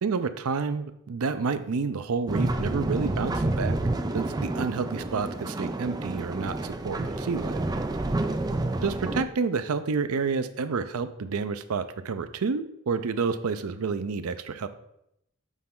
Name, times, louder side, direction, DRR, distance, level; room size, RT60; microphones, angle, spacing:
voice 1, 0.0-3.8 4.1-7.6 8.8-14.7, right 5 dB, 75° right, 10 dB, 0.5 m, -29 dB
sound 1, 2.3-9.2, right 2 dB, 15° right, 0.3 m, -29 dB
8.2 x 4.2 x 3.7 m, 0.79 s
head